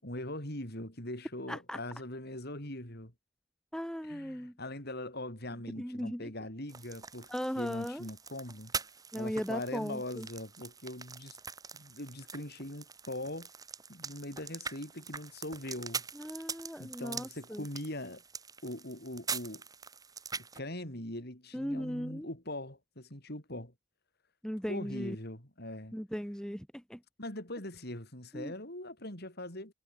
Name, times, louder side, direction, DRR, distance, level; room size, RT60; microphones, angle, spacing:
voice 1, 0.0-3.1 4.0-8.7 9.1-11.4 11.7-13.5 13.9-16.0 16.8-18.2 18.6-19.6 20.4-23.7 24.7-25.9 27.2-29.7, left 1 dB, 50° left, 6.4 m, -41 dB
voice 2, 1.5-1.8 3.7-4.5 5.8-6.3 7.3-8.0 9.1-10.3 16.1-17.6 21.5-22.3 24.4-25.2 25.9-27.0 28.3-28.5, equal, 5° left, 2.3 m, -37 dB
sound 1, 6.7-20.6, right 5 dB, 15° right, 1.5 m, -43 dB
head